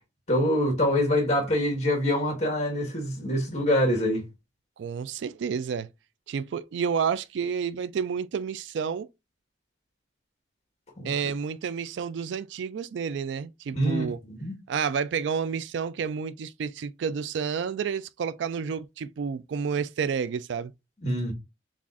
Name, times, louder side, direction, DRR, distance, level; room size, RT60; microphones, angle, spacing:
voice 1, 0.3-4.2 11.0-11.1 13.7-14.5 21.0-21.3, left 1 dB, 40° left, 1.5 m, -25 dB
voice 2, 4.8-5.9 6.3-9.1 11.0-14.2 14.7-20.7, right 6 dB, 85° right, 0.3 m, -30 dB
7.1 x 2.5 x 2.5 m
head